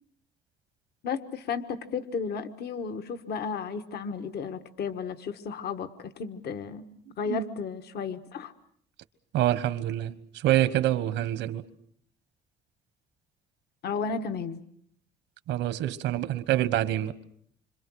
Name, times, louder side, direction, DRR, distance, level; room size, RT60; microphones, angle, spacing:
voice 1, 1.0-6.8 7.2-8.5 13.8-14.6, left 5 dB, 60° left, 1.5 m, -33 dB
voice 2, 9.3-11.6 15.5-17.1, right 13 dB, 85° right, 1.3 m, -26 dB
26.5 x 26.0 x 6.4 m
cardioid pair, 110°, 18 cm